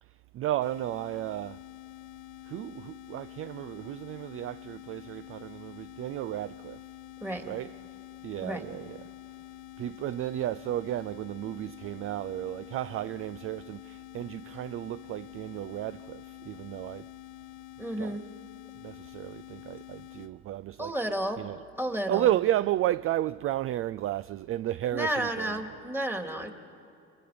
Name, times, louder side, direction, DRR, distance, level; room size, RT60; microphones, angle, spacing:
voice 1, 0.0-1.6 2.4-6.9 7.5-7.7 8.2-9.1 9.8-17.1 18.0-18.2 18.8-20.9 21.4-21.6 22.1-25.6, right 13 dB, 40° right, 0.4 m, -33 dB
sound 1, 0.6-20.3, left 19 dB, 75° left, 1.0 m, -47 dB
voice 2, 17.8-18.2 20.8-21.4 21.8-22.3 24.9-26.5, right 1 dB, 5° right, 2.6 m, -31 dB
27.0 x 22.5 x 5.1 m
hypercardioid pair, 65°, 33 cm